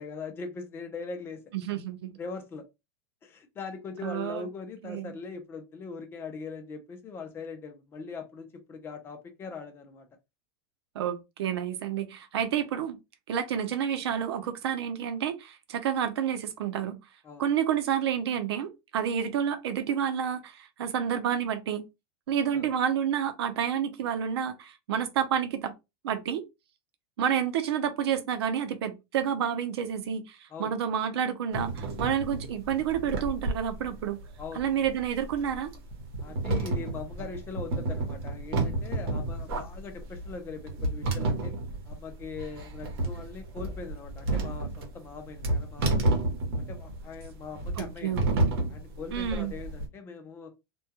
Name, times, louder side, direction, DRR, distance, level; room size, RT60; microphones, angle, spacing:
voice 1, 0.0-1.4 2.2-2.6 3.2-10.1 17.2-17.4 22.5-22.7 30.5-30.7 34.4-34.7 36.2-41.5 41.9-46.2 46.5-48.1 48.7-50.5, left 4 dB, 15° left, 0.4 m, -41 dB
voice 2, 1.5-2.1 4.0-4.4 4.8-5.1 10.9-13.0 13.3-17.0 17.4-21.8 22.3-25.7 26.0-26.4 27.2-34.2 34.5-35.7 47.8-48.5 49.1-49.5, right 8 dB, 90° right, 0.6 m, -29 dB
sound 1, 31.5-49.8, right 2 dB, 70° right, 1.0 m, -31 dB
2.2 x 2.2 x 2.8 m
supercardioid pair, 160°, 13 cm